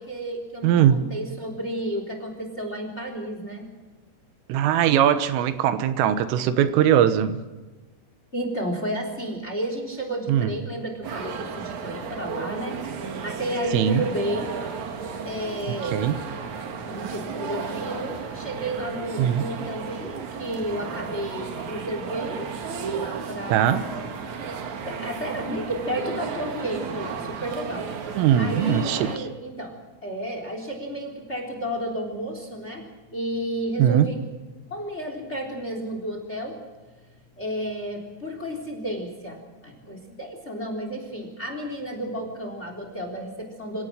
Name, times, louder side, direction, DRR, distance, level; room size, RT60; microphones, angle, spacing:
voice 1, 0.0-3.7 8.3-12.8 13.2-14.5 15.2-16.0 16.8-22.5 22.9-24.0 24.8-27.9 28.4-29.8 30.0-32.8 33.1-34.2 34.7-36.6 37.4-43.9, equal, 15° left, 5 dB, 3.0 m, -32 dB
voice 2, 0.6-1.0 4.5-7.4 10.3-10.5 13.7-14.0 15.9-16.2 19.2-19.5 23.5-23.9 28.2-29.2 33.8-34.1, right 10 dB, 80° right, 11 dB, 3.6 m, -20 dB
sound 1, 11.0-29.2, right 6 dB, 50° right, 2.4 m, -34 dB
28.0 x 17.0 x 6.6 m, 1.2 s
omnidirectional pair, 5.8 m